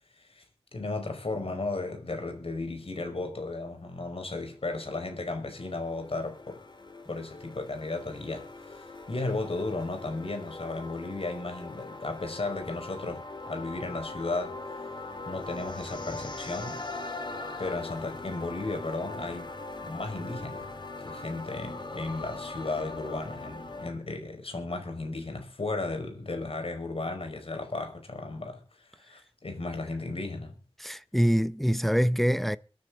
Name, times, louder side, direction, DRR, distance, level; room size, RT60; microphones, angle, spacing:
voice 1, 0.7-6.6 7.1-14.6 15.3-16.8 17.6-19.5 19.8-20.7 21.0-30.5, left 2 dB, 70° left, 5.2 m, -35 dB
sound 1, 4.6-23.9, left 2 dB, 50° left, 2.6 m, -41 dB
voice 2, 30.8-32.6, equal, ahead, 0.7 m, -25 dB
22.0 x 10.0 x 3.9 m
wide cardioid pair, 65°, 10 cm